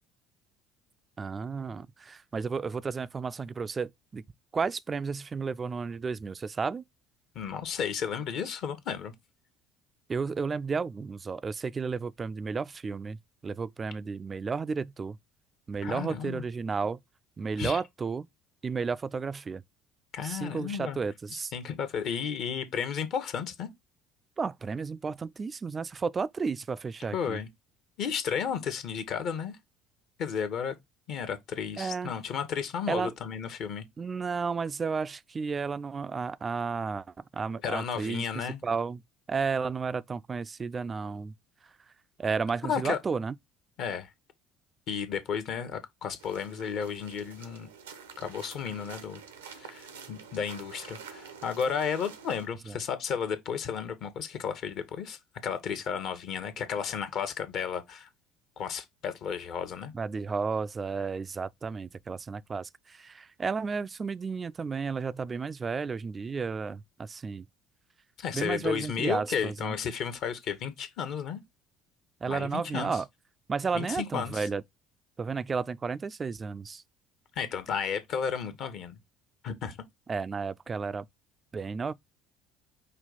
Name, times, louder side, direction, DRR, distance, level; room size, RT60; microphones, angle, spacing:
voice 1, 1.2-4.2 4.5-6.8 10.1-15.2 15.7-17.0 17.4-18.3 18.6-19.6 20.2-21.5 24.4-27.4 31.8-32.1 32.9-33.1 34.0-37.1 37.3-39.0 39.3-41.3 42.2-43.3 52.7-52.8 59.9-67.5 68.3-69.8 72.2-73.1 73.5-74.6 75.2-76.8 80.1-81.1 81.5-81.9, right 5 dB, 30° right, 0.3 m, -32 dB
voice 2, 7.3-9.1 15.8-16.5 17.6-17.8 20.1-21.0 21.3-23.7 27.1-27.5 28.0-29.6 30.2-30.7 31.1-33.8 37.6-38.6 42.6-43.0 43.8-44.1 44.9-47.7 48.2-49.2 49.6-58.1 58.6-59.9 68.2-71.4 72.3-72.9 73.7-74.5 77.4-79.0 79.4-79.8, left 7 dB, 55° left, 0.9 m, -33 dB
sound 1, 46.2-52.5, right 6 dB, 80° right, 0.6 m, -48 dB
5.4 x 2.3 x 3.9 m
figure-of-eight pair, 60°, 0 cm